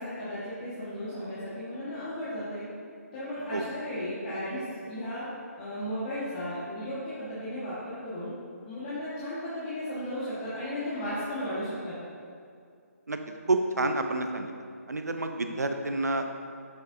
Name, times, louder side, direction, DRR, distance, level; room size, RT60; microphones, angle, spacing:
voice 1, 0.0-2.6 3.1-5.3 5.6-8.3 8.6-12.0, equal, 30° left, -11 dB, 1.6 m, -35 dB
voice 2, 13.5-14.5 14.9-16.4, right 2 dB, 90° right, 6 dB, 0.7 m, -28 dB
7.7 x 6.7 x 2.7 m, 2.3 s
figure-of-eight pair, 150°, 9 cm